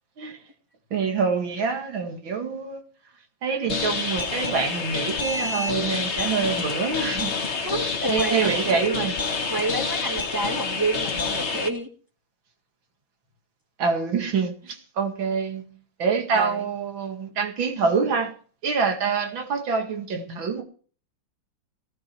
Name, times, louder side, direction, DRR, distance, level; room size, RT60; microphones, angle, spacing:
voice 1, 0.9-2.8 3.4-7.3 8.1-9.1 13.8-18.3 18.6-20.6, right 5 dB, 80° right, 2.8 m, -26 dB
sound 1, 3.7-11.7, left 4 dB, 40° left, 1.5 m, -28 dB
voice 2, 7.6-8.8 9.5-11.9 16.3-16.7, right 2 dB, 10° right, 1.5 m, -28 dB
18.0 x 11.5 x 4.6 m
omnidirectional pair, 2.1 m